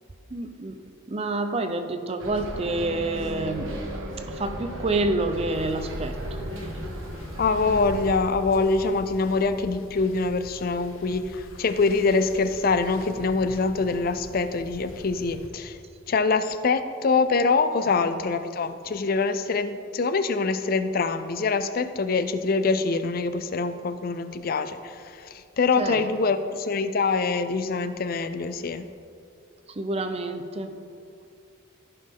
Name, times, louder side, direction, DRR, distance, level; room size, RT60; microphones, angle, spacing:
voice 1, 0.3-0.8 1.1-6.4 25.8-26.0 29.8-30.8, right 2 dB, 30° right, 7 dB, 0.5 m, -28 dB
Bus, 2.2-8.1, right 1 dB, 85° right, 1.5 m, -35 dB
sound 1, 5.5-15.5, left 1 dB, 85° left, 0.9 m, -43 dB
voice 2, 7.4-15.8 16.1-28.8, left 4 dB, 45° left, 11 dB, 0.4 m, -24 dB
15.0 x 5.4 x 3.6 m, 2.4 s
head